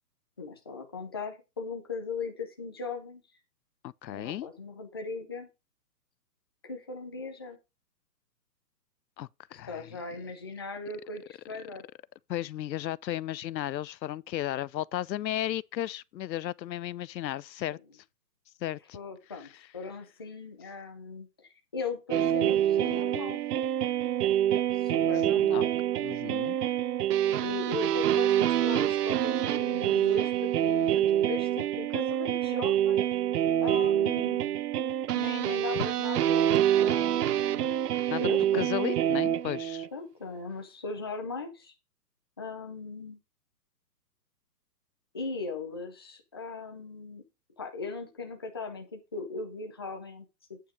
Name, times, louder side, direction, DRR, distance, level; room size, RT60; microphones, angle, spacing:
voice 1, 0.4-3.2 4.1-5.5 6.6-7.6 9.7-11.8 18.9-23.4 24.7-25.7 27.4-33.0 33.6-34.6 35.1-37.7 38.2-38.7 39.9-41.7 42.4-43.2 45.1-47.2 47.6-50.6, left 3 dB, 15° left, 0.5 m, -38 dB
voice 2, 3.8-4.5 9.2-9.9 12.3-17.8 18.6-19.0 25.5-25.6 26.0-26.6 35.7-35.8 38.1-38.2 38.5-39.9, left 13 dB, 85° left, 0.6 m, -34 dB
sound 1, 22.1-39.9, right 11 dB, 65° right, 0.6 m, -26 dB
8.9 x 5.6 x 4.9 m
hypercardioid pair, 160°, 50 cm